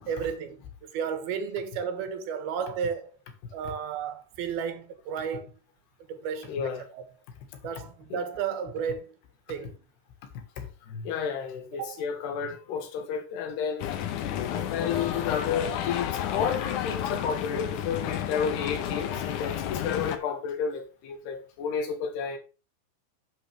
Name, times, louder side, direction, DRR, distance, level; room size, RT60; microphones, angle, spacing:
voice 1, 0.1-3.2 3.5-5.5 6.1-7.0 7.6-9.2 9.5-9.8 11.8-12.1, right 7 dB, 75° right, 3.1 m, -33 dB
voice 2, 6.5-6.8 8.1-8.2 10.6-13.9 14.5-22.4, left 7 dB, 85° left, 3.8 m, -31 dB
sound 1, 13.8-20.2, left 10 dB, 70° left, 2.0 m, -31 dB
12.0 x 7.5 x 3.4 m
omnidirectional pair, 4.6 m